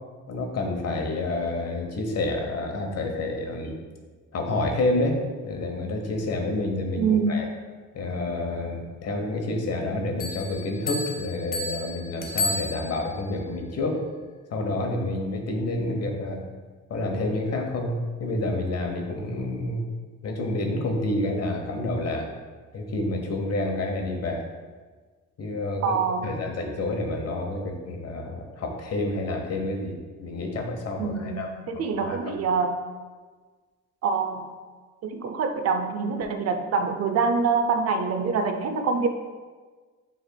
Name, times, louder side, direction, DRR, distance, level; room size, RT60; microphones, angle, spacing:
voice 1, 0.3-3.8 4.3-5.2 5.4-7.5 7.9-14.0 14.5-16.4 16.9-19.8 20.2-22.3 22.7-24.4 25.4-31.5 31.9-32.4, left 2 dB, 55° left, 2 dB, 0.9 m, -29 dB
voice 2, 7.0-7.4 25.8-26.4 31.0-32.7 34.0-34.5 35.0-39.1, right 5 dB, 55° right, 7 dB, 0.5 m, -25 dB
Bell, 10.2-13.3, left 2 dB, 30° left, 0.6 m, -32 dB
6.8 x 3.4 x 2.2 m, 1.4 s
cardioid pair, 90°, 30 cm